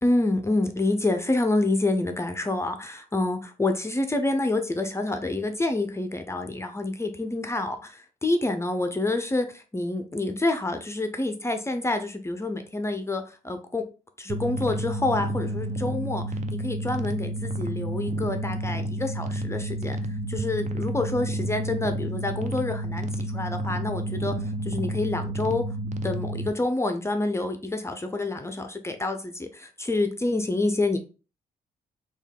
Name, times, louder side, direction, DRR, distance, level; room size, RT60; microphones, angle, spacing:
voice 1, 0.0-13.8 14.2-16.2 16.5-20.0 20.3-24.3 24.6-25.6 26.0-31.0, left 2 dB, 15° left, 6 dB, 0.6 m, -27 dB
sound 1, 14.3-26.5, right 1 dB, 50° right, 0.5 m, -30 dB
3.6 x 2.4 x 3.4 m, 0.34 s
cardioid pair, 70°, 16 cm